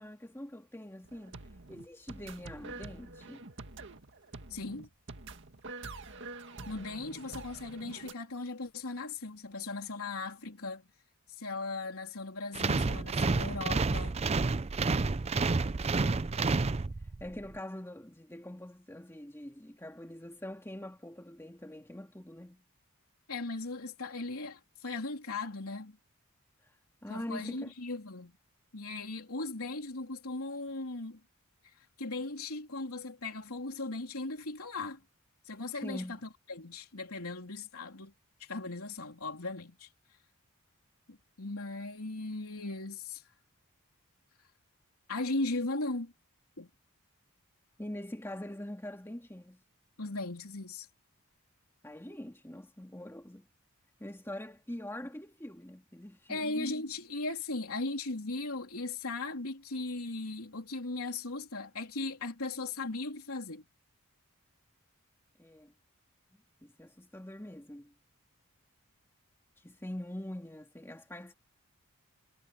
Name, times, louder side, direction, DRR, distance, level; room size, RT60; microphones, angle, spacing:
voice 1, 0.0-1.4 1.7-3.5 6.6-7.1 15.8-16.4 17.0-22.6 26.6-27.7 35.8-36.2 47.8-49.6 51.8-53.5 54.0-56.9 65.4-65.7 66.6-67.9 69.6-71.3, left 1 dB, 10° left, 2.3 m, -44 dB
sound 1, 1.0-8.1, right 3 dB, 55° right, 1.9 m, -46 dB
voice 2, 4.5-4.9 6.7-10.8 11.3-14.2 23.3-26.0 27.1-28.3 28.7-31.2 31.6-35.0 35.4-36.0 36.5-38.1 38.4-39.9 41.1-43.2 45.1-46.1 46.6-46.7 50.0-50.9 56.3-63.6, left 2 dB, 75° left, 3.5 m, -38 dB
sound 2, 12.5-17.3, right 3 dB, 30° right, 0.5 m, -29 dB
head